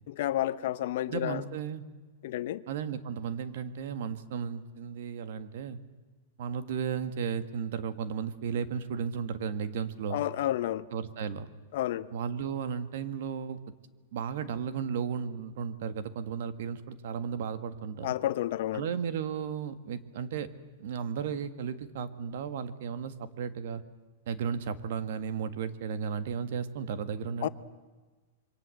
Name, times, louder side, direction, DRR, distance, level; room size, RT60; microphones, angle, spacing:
voice 1, 0.1-1.4 2.2-2.6 10.1-10.9 11.7-12.1 18.0-18.9 27.4-27.5, left 13 dB, 55° left, 0.9 m, -30 dB
voice 2, 1.1-1.8 2.7-5.8 6.4-10.2 10.9-11.5 12.1-13.6 14.1-18.1 18.7-20.5 20.8-23.8 24.3-27.5, right 7 dB, 55° right, 1.7 m, -34 dB
27.5 x 23.5 x 7.8 m
supercardioid pair, 170°, 0 cm